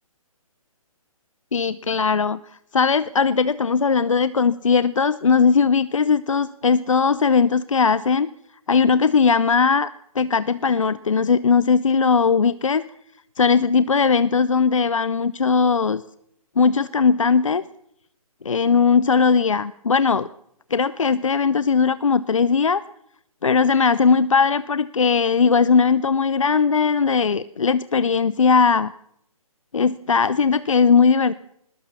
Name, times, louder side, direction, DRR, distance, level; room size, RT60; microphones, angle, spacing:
voice 1, 1.5-2.4 2.7-8.3 8.7-9.9 10.1-12.8 13.4-16.0 16.6-17.6 18.4-20.3 20.7-22.8 23.4-28.9 29.7-31.3, left 5 dB, 60° left, 17 dB, 0.7 m, -19 dB
20.5 x 20.0 x 7.2 m, 0.76 s
figure-of-eight pair, 135°, 18 cm